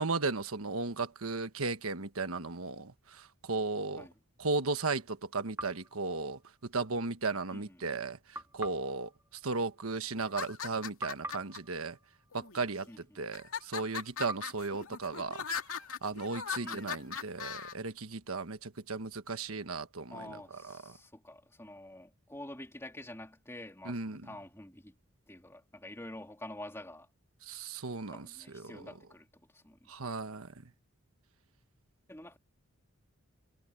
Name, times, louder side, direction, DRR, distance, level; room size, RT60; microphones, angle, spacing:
voice 1, 0.0-4.1 4.4-6.4 6.7-8.2 8.5-9.1 9.4-12.0 12.3-12.9 13.2-15.4 16.0-20.4 23.9-24.2 27.5-28.3 28.5-28.8 29.9-30.5, right 3 dB, 85° right, 1.3 m, -35 dB
sound 1, 5.6-6.9 8.3-10.7 11.0-13.3 14.3-16.1, right 1 dB, 15° right, 2.7 m, -48 dB
voice 2, 7.5-8.0 12.9-13.3 16.6-17.2 20.1-25.0 25.3-27.1 28.1-29.9 32.1-32.4, left 1 dB, 10° left, 2.8 m, -48 dB
sound 2, 10.2-11.6 12.3-12.9 13.3-17.7, left 7 dB, 80° left, 2.2 m, -39 dB
head